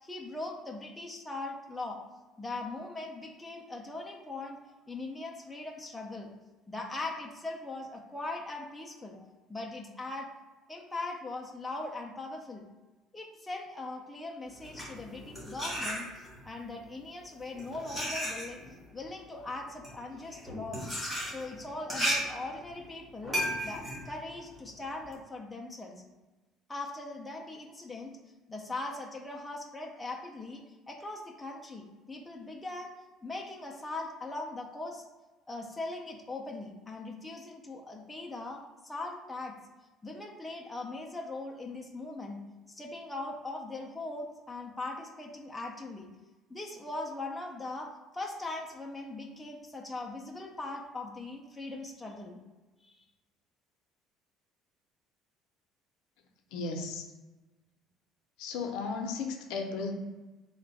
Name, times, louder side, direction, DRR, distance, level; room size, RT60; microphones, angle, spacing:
voice 1, 0.0-2.0 2.4-4.6 4.9-6.3 6.7-10.3 10.7-12.7 13.1-18.6 18.9-20.9 21.2-26.0 26.7-28.1 28.5-32.9 33.2-35.0 35.5-39.5 40.0-42.4 42.7-46.1 46.5-52.4 52.8-53.0, left 2 dB, 5° left, -1 dB, 0.3 m, -40 dB
sound 1, 14.5-16.5 17.3-25.2, equal, 10° right, 1.0 m, -35 dB
voice 2, 56.5-57.0 58.4-59.9, left 4 dB, 75° left, 3 dB, 0.5 m, -35 dB
3.1 x 2.2 x 3.9 m, 1.2 s
cardioid pair, 170°, 0 cm